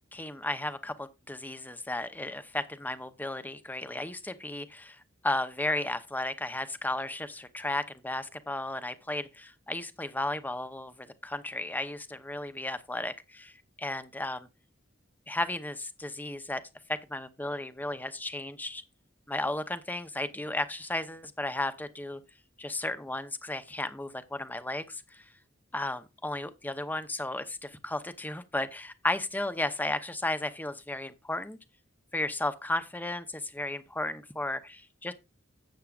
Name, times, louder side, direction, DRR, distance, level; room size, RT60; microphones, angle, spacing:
voice 1, 0.1-13.5 13.8-14.5 15.3-16.6 17.1-18.8 19.3-22.2 22.6-25.2 25.7-31.6 32.1-35.1, left 2 dB, 10° left, 0.7 m, -34 dB
13.0 x 8.2 x 2.4 m
head